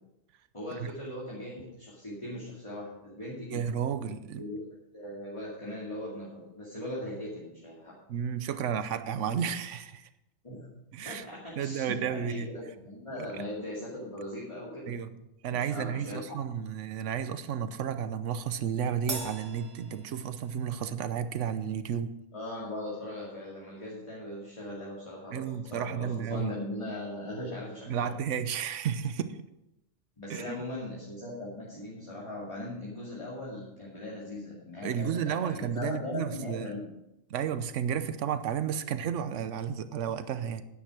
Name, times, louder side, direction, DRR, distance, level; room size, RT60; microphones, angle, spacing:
voice 1, 0.5-3.6 4.4-8.0 10.4-10.7 11.0-14.9 15.5-16.4 22.3-28.1 30.2-36.9, left 1 dB, 25° left, -5 dB, 2.4 m, -39 dB
voice 2, 3.5-4.4 8.1-10.1 10.9-11.2 11.6-12.5 14.9-15.1 15.4-22.1 25.3-26.5 27.9-29.4 30.3-30.6 34.8-36.7 37.3-40.6, right 8 dB, 70° right, 12 dB, 1.1 m, -32 dB
Crash cymbal, 19.1-20.7, right 3 dB, 50° right, 1.7 m, -40 dB
10.5 x 9.7 x 4.9 m, 0.88 s
omnidirectional pair, 1.4 m